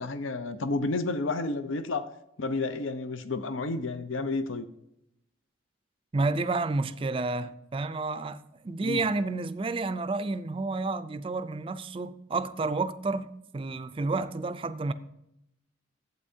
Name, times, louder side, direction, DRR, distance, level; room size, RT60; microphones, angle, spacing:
voice 1, 0.0-2.1 2.4-4.7 8.8-9.0, left 3 dB, 85° left, 0.6 m, -31 dB
voice 2, 6.1-14.9, right 3 dB, 25° right, 0.4 m, -30 dB
12.0 x 8.1 x 2.7 m
head